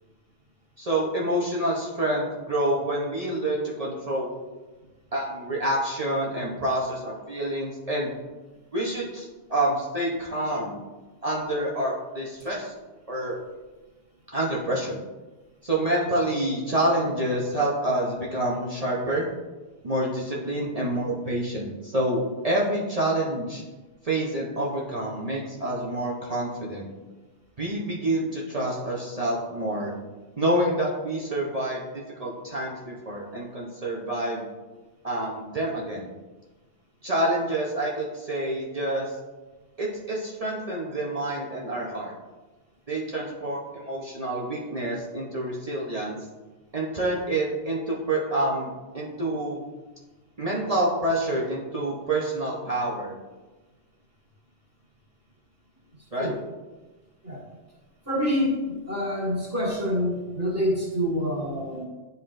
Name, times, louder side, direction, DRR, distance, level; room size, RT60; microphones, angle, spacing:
voice 1, 0.8-4.4 5.1-8.1 8.7-10.8 11.2-12.7 13.1-13.4 14.3-15.0 15.6-19.3 19.8-23.6 24.0-26.9 27.6-29.9 30.4-34.5 35.0-36.1 37.0-39.1 39.8-42.1 42.9-46.2 46.7-49.6 50.4-53.1 56.1-56.3, right 1 dB, 35° right, -4 dB, 0.8 m, -27 dB
voice 2, 58.1-61.8, equal, 15° right, -7 dB, 2.1 m, -27 dB
10.5 x 4.0 x 2.5 m, 1.2 s
omnidirectional pair, 1.2 m